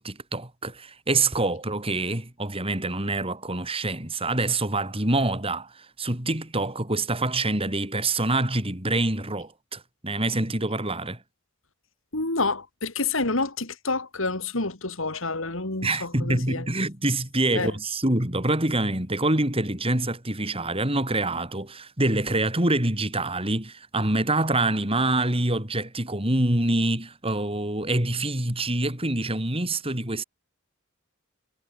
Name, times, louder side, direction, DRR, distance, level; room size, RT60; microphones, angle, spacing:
voice 1, 0.0-11.2 15.8-30.2, right 2 dB, 25° right, 5.2 m, -26 dB
voice 2, 12.1-16.7 17.5-17.7, left 3 dB, 65° left, 3.1 m, -28 dB
head